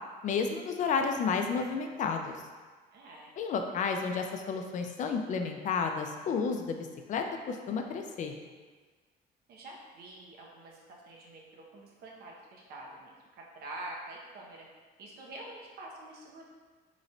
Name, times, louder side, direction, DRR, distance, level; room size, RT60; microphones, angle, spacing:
voice 1, 0.2-2.4 3.4-8.4, left 5 dB, 45° left, 4 dB, 0.4 m, -31 dB
voice 2, 2.9-3.3 9.5-14.7 15.0-16.4, right 2 dB, 70° right, -2 dB, 0.8 m, -46 dB
3.0 x 2.6 x 4.2 m, 1.4 s
cardioid pair, 110°, 17 cm